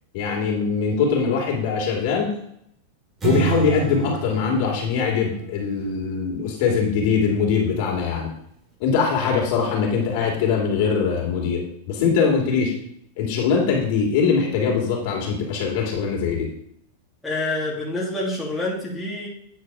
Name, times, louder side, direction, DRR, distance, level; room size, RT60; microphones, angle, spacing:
voice 1, 0.1-2.3 3.2-8.3 8.8-12.7 13.2-16.5, left 6 dB, 55° left, -1 dB, 2.8 m, -22 dB
sound 1, 3.2-5.9, right 6 dB, 20° right, 2.1 m, -27 dB
voice 2, 17.2-19.3, left 2 dB, 5° left, -5 dB, 1.9 m, -27 dB
9.3 x 4.5 x 4.8 m, 0.70 s
supercardioid pair, 135°, 0 cm